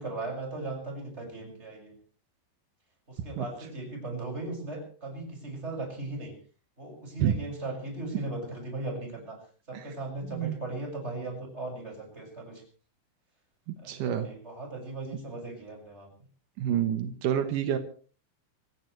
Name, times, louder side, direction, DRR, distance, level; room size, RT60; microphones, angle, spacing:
voice 1, 0.0-1.9 3.1-6.3 6.8-9.4 9.7-12.6 13.8-16.1, right 2 dB, 15° right, 1 dB, 6.2 m, -37 dB
voice 2, 13.9-14.3 16.6-17.8, right 9 dB, 85° right, 8 dB, 1.9 m, -28 dB
27.5 x 15.5 x 3.3 m, 0.40 s
omnidirectional pair, 5.6 m